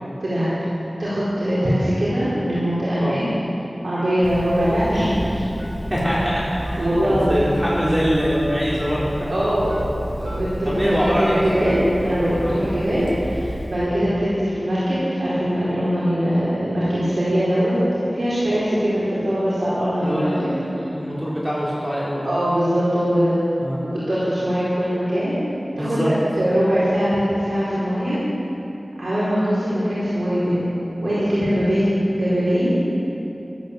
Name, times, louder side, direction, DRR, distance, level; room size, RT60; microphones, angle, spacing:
voice 1, 1.0-3.2 3.8-5.5 6.8-7.5 9.3-9.7 10.2-20.8 22.2-23.4 23.8-25.4 25.8-28.2 29.0-30.7 31.0-32.7, equal, 85° right, -11 dB, 4.5 m, -21 dB
Telephone, 4.2-13.9, equal, 5° left, 1.9 m, -31 dB
voice 2, 5.9-9.3 10.6-11.7 12.4-12.6 20.0-22.3 23.6-23.8 25.7-26.1, equal, 15° right, -8 dB, 3.7 m, -23 dB
14.5 x 13.0 x 7.4 m, 2.8 s
wide cardioid pair, 45°, 0 cm